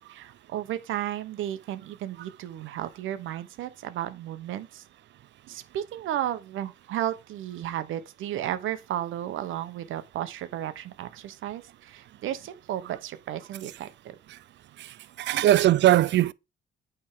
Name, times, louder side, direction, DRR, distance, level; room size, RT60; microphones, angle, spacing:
voice 1, 0.1-4.8 5.5-14.1 15.3-15.5, right 12 dB, 80° right, 1.0 m, -34 dB
voice 2, 14.8-16.3, right 13 dB, 65° right, 0.5 m, -21 dB
8.6 x 3.5 x 4.9 m
cardioid pair, 90°, 20 cm